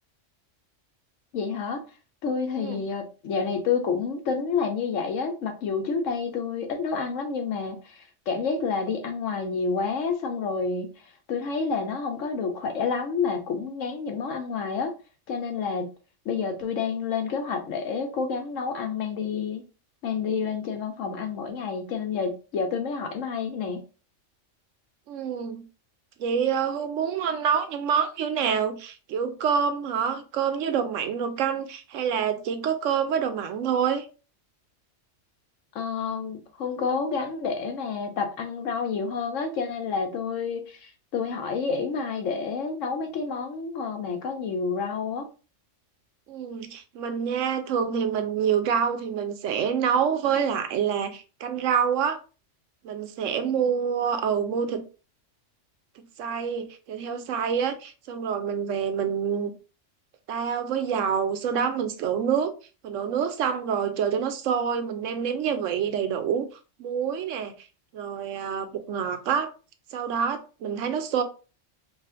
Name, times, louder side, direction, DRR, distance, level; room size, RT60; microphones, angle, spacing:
voice 1, 1.3-1.8 2.2-10.9 11.3-14.9 15.3-15.9 16.2-19.6 20.0-23.8 35.7-45.3, left 5 dB, 85° left, 1.1 m, -29 dB
voice 2, 25.1-25.6 26.2-34.1 46.3-52.2 52.8-54.8 56.0-59.5 60.3-62.5 62.8-66.5 66.8-67.5 67.9-69.5 69.9-71.2, right 7 dB, 85° right, 1.0 m, -27 dB
4.8 x 2.5 x 2.5 m
omnidirectional pair, 1.3 m